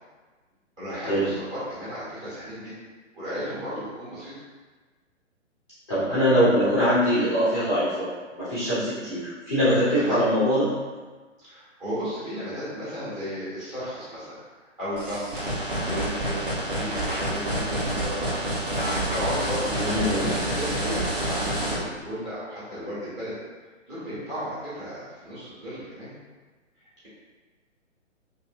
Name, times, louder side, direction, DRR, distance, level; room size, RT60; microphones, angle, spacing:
voice 1, 0.8-2.7 3.1-4.3 10.0-10.2 11.4-15.4 15.8-16.4 16.7-18.5 19.0-23.3 23.9-26.1, equal, 15° right, -12 dB, 0.9 m, -34 dB
voice 2, 5.9-10.7 19.8-20.4, equal, 25° left, -12 dB, 0.4 m, -23 dB
sound 1, 15.0-21.7, right 1 dB, 45° right, 0.8 m, -28 dB
2.6 x 2.5 x 2.2 m, 1.3 s
figure-of-eight pair, 130°, 38 cm